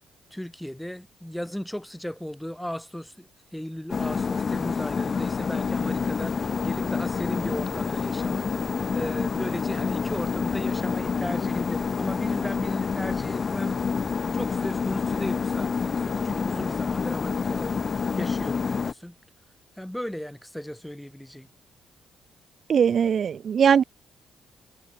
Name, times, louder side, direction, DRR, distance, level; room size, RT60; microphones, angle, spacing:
voice 1, 0.3-13.8 14.3-17.7 18.2-19.2 19.8-21.5, equal, 5° left, 3.2 m, -36 dB
sound 1, 3.9-18.9, left 5 dB, 40° left, 0.9 m, -28 dB
voice 2, 22.7-23.8, right 7 dB, 55° right, 0.4 m, -20 dB
cardioid pair, 90°, 0 cm